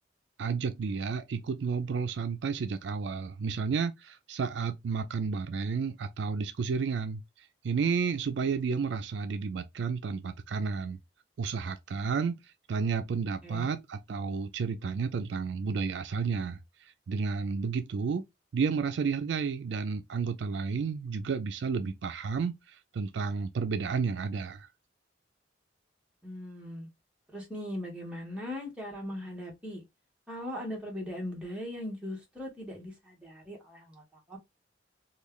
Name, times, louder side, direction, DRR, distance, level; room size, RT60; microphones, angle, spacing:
voice 1, 0.4-11.0 11.4-18.2 18.5-24.7, right 5 dB, 70° right, 0.4 m, -32 dB
voice 2, 26.2-26.9 27.3-29.8 30.3-34.4, left 1 dB, 5° right, 1.2 m, -39 dB
3.1 x 2.3 x 3.5 m
head